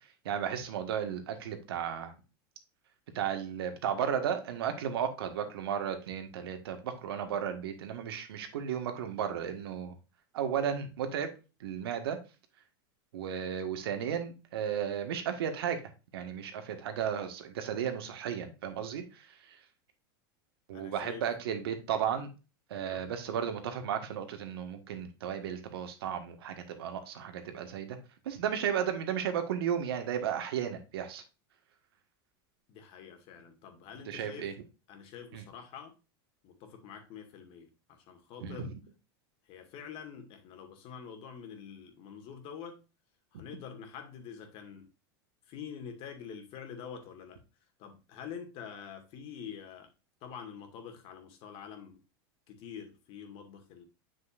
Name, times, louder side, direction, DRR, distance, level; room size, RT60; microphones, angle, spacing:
voice 1, 0.2-2.1 3.1-9.9 10.3-11.3 11.6-12.2 13.1-15.8 16.1-19.6 20.7-22.3 22.7-28.0 28.2-31.2 34.1-34.5 35.3-35.4 38.4-38.7, right 8 dB, 85° right, 6 dB, 1.7 m, -34 dB
voice 2, 20.7-21.2 22.7-23.1 32.7-34.5 34.9-35.9 36.4-38.7 39.5-42.8 43.3-44.9 45.5-47.4 47.8-49.9 50.2-52.0 52.5-53.8, left 7 dB, 50° left, 6 dB, 2.1 m, -46 dB
7.6 x 6.4 x 2.5 m, 0.30 s
supercardioid pair, 130°, 12 cm